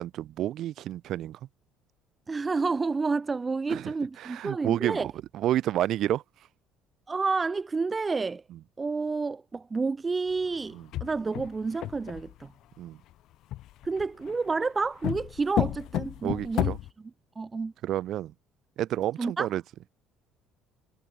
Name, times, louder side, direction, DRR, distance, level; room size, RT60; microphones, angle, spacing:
voice 1, 0.0-1.4 3.7-6.2 8.5-8.6 10.7-10.9 12.8-13.0 16.2-16.8 17.8-18.3 18.8-19.6, right 12 dB, 50° right, 1.9 m, -30 dB
voice 2, 2.3-5.1 7.1-8.4 8.8-12.5 13.8-16.7 17.4-17.7 19.2-19.5, right 4 dB, 15° right, 0.5 m, -29 dB
sound 1, 10.8-12.4 13.5-14.3 15.0-16.9, left 14 dB, 55° left, 1.6 m, -31 dB
cardioid pair, 155°, 0 cm